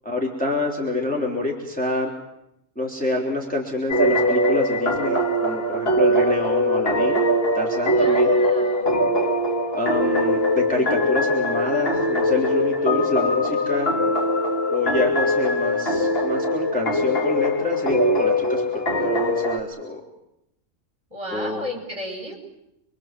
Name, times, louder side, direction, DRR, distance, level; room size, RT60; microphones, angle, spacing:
voice 1, 0.1-2.1 2.8-7.2 7.5-8.4 9.7-13.9 14.7-20.0 21.3-21.7, left 2 dB, 5° left, -1 dB, 3.5 m, -27 dB
sound 1, 3.9-19.6, left 1 dB, 40° left, 1.9 m, -21 dB
voice 2, 7.9-9.0 21.1-22.4, left 1 dB, 20° right, 2 dB, 5.5 m, -34 dB
27.0 x 23.5 x 7.6 m, 0.83 s
omnidirectional pair, 1.6 m